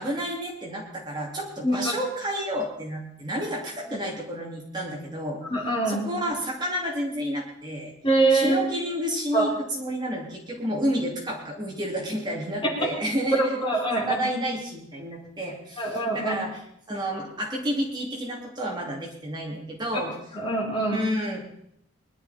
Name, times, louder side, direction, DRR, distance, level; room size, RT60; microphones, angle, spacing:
voice 1, 0.0-5.4 5.8-7.9 8.3-13.6 13.9-16.6 16.9-20.2 20.9-21.4, equal, 20° right, -1 dB, 2.7 m, -30 dB
voice 2, 5.5-6.1 8.0-8.6 9.3-9.5 12.6-12.7 13.4-14.3 15.8-16.4 20.3-21.1, right 2 dB, 25° left, -1 dB, 2.9 m, -24 dB
21.0 x 11.5 x 4.2 m, 0.71 s
head